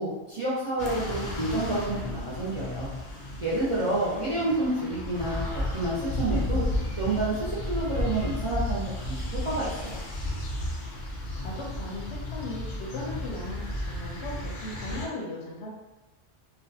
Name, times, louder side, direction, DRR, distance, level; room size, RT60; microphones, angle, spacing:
voice 1, 0.0-2.9 3.4-5.4 5.7-6.6 7.0-10.0, right 2 dB, 40° right, -8 dB, 0.5 m, -29 dB
sound 1, 0.8-15.1, left 1 dB, 60° left, 0.5 m, -33 dB
voice 2, 3.8-4.5 11.4-15.7, left 2 dB, 85° left, -2 dB, 0.9 m, -38 dB
2.5 x 2.1 x 2.7 m, 1.1 s
omnidirectional pair, 1.1 m